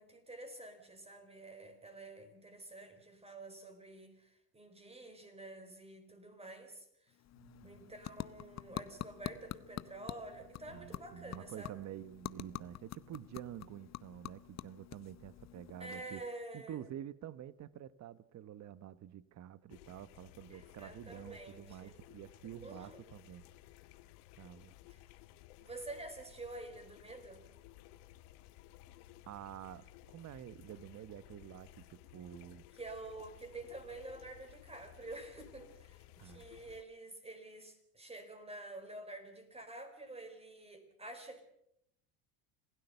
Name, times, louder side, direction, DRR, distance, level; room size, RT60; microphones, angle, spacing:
voice 1, 0.0-7.2 7.6-11.8 15.8-16.9 20.5-22.0 22.6-23.0 24.9-25.0 25.6-27.4 32.7-41.4, right 2 dB, 15° right, 4.3 m, -49 dB
sound 1, 7.1-16.5, left 13 dB, 35° left, 0.8 m, -47 dB
voice 2, 7.4-7.9 10.7-16.2 16.5-23.5 24.4-24.7 29.3-32.7 36.2-36.5, right 11 dB, 35° right, 1.0 m, -49 dB
sound 2, 19.7-36.8, left 14 dB, 75° left, 1.5 m, -58 dB
26.0 x 16.5 x 6.9 m
supercardioid pair, 110°, 46 cm